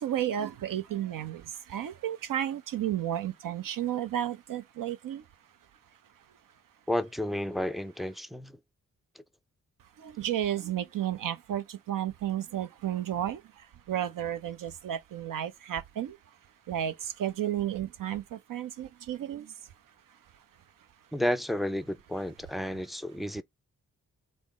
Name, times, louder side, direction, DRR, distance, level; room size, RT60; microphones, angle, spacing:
voice 1, 0.0-1.4 1.7-5.2 10.0-13.4 13.9-16.2 16.7-19.5, right 11 dB, 65° right, 0.5 m, -32 dB
voice 2, 6.9-8.5 21.1-23.4, left 1 dB, ahead, 0.4 m, -31 dB
3.5 x 2.0 x 3.7 m
supercardioid pair, 40°, 35 cm